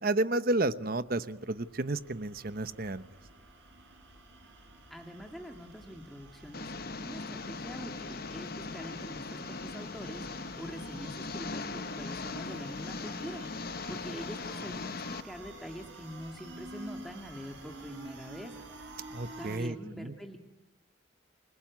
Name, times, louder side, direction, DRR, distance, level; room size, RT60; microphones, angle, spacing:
voice 1, 0.0-3.0 19.1-20.1, right 2 dB, 50° right, 13 dB, 1.0 m, -31 dB
Power Charge, 1.0-19.6, right 2 dB, 65° right, 6.3 m, -50 dB
voice 2, 4.9-6.7 7.0-18.5 19.4-20.4, equal, ahead, 2 dB, 2.0 m, -44 dB
Engine, 6.5-15.2, left 3 dB, 50° left, 1.0 m, -39 dB
28.5 x 21.0 x 9.6 m, 0.93 s
head